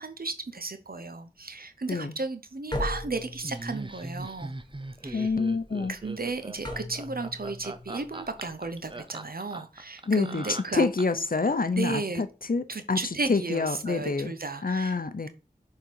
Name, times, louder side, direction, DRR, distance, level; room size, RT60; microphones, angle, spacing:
voice 1, 0.0-4.5 5.0-5.3 5.9-10.8 11.7-12.2 12.7-15.0, right 3 dB, 70° right, 0.9 m, -34 dB
sound 1, 2.7-9.0, left 1 dB, 25° left, 1.3 m, -39 dB
Laughter, 3.4-11.3, right 2 dB, 30° right, 0.7 m, -40 dB
voice 2, 5.1-5.9 10.1-13.0 13.3-14.3 14.6-15.3, left 4 dB, 65° left, 0.7 m, -27 dB
6.7 x 3.9 x 4.6 m
wide cardioid pair, 40°, 16 cm